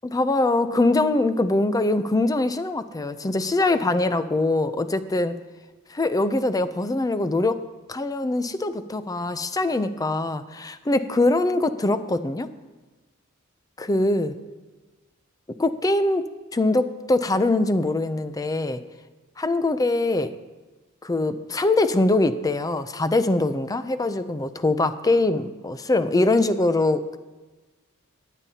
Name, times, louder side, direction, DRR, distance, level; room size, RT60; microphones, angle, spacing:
voice 1, 0.0-5.4 5.9-7.6 7.9-12.5 13.8-14.3 15.6-16.2 16.5-18.8 19.4-20.4 21.0-27.2, left 2 dB, 15° left, 11 dB, 0.4 m, -23 dB
17.5 x 9.9 x 2.8 m, 1.2 s
head